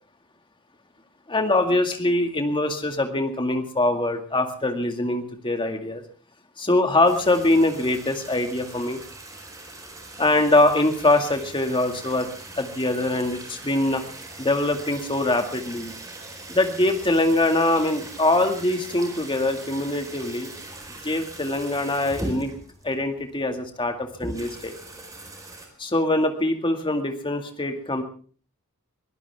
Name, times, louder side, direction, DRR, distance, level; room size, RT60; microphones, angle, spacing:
voice 1, 1.3-6.0 6.6-9.0 10.2-12.3 12.6-14.0 14.4-15.9 16.5-20.5 21.0-22.5 22.8-24.7 25.8-28.0, left 2 dB, 25° left, 5 dB, 2.1 m, -23 dB
sound 1, 7.0-25.7, right 2 dB, 15° right, 4.3 m, -40 dB
22.5 x 16.5 x 3.6 m, 0.42 s
head